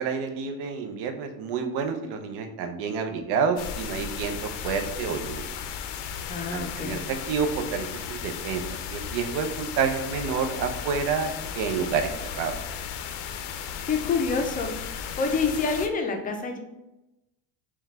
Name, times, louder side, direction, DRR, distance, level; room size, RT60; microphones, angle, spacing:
voice 1, 0.0-5.6 6.5-12.6, right 5 dB, 80° right, 7 dB, 0.7 m, -29 dB
sound 1, 3.6-15.9, left 7 dB, 80° left, 0.5 m, -35 dB
voice 2, 6.3-7.0 13.9-16.6, left 4 dB, 20° left, 4 dB, 0.4 m, -27 dB
4.6 x 2.3 x 3.4 m, 0.96 s
cardioid pair, 135°, 40 cm